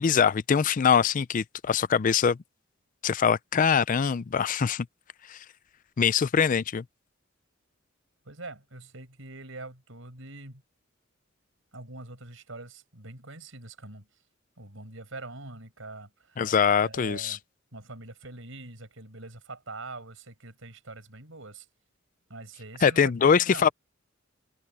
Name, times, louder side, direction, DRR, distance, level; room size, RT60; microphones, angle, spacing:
voice 1, 0.0-2.4 3.0-4.9 5.3-5.4 6.0-6.8 16.4-17.4 22.8-23.7, left 6 dB, 40° left, 0.4 m, -23 dB
voice 2, 8.2-10.6 11.7-14.1 14.6-16.5 16.8-17.4 17.7-21.7 22.3-23.7, right 2 dB, 70° right, 6.8 m, -44 dB
head